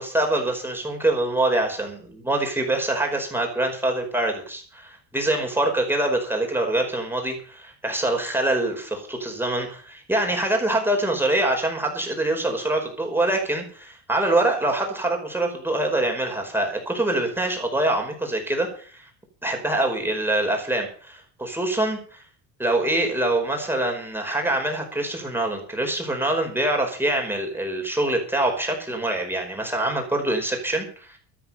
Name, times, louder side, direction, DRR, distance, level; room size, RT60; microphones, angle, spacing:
voice 1, 0.0-19.1 19.4-22.2 22.6-31.2, right 1 dB, 5° right, 2 dB, 4.9 m, -25 dB
13.0 x 13.0 x 5.8 m, 0.43 s
cardioid pair, 130°, 43 cm